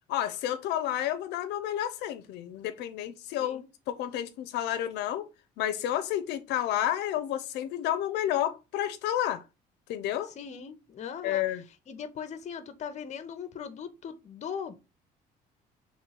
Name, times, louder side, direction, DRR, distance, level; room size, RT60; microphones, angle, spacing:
voice 1, 0.1-5.2 5.6-9.4 9.9-10.3 11.2-11.6, left 12 dB, 80° left, 0.5 m, -30 dB
voice 2, 10.4-11.4 11.9-14.8, left 7 dB, 45° left, 0.7 m, -39 dB
3.7 x 3.1 x 4.1 m
cardioid pair, 110°, 17 cm